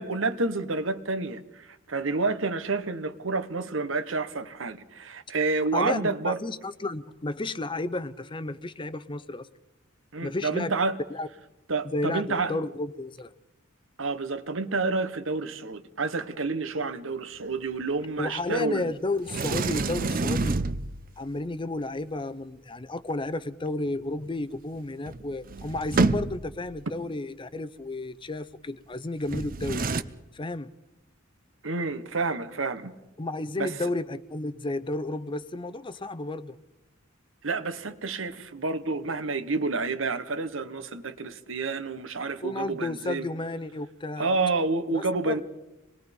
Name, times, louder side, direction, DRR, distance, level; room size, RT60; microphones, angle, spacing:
voice 1, 0.0-6.4 10.1-11.0 11.7-12.6 14.0-18.9 31.6-32.9 33.6-33.8 37.4-43.3 44.2-45.4, right 3 dB, 70° right, 1.3 m, -29 dB
voice 2, 5.7-9.5 10.2-10.7 11.1-11.3 11.9-13.3 18.2-20.6 21.2-29.8 30.3-30.7 33.2-36.6 42.4-44.4 44.9-45.4, left 2 dB, 25° left, 0.6 m, -32 dB
Sliding door, 19.3-21.2 24.8-24.9 25.1-26.6 29.3-30.0, right 3 dB, 45° right, 0.8 m, -28 dB
26.5 x 20.5 x 5.4 m
head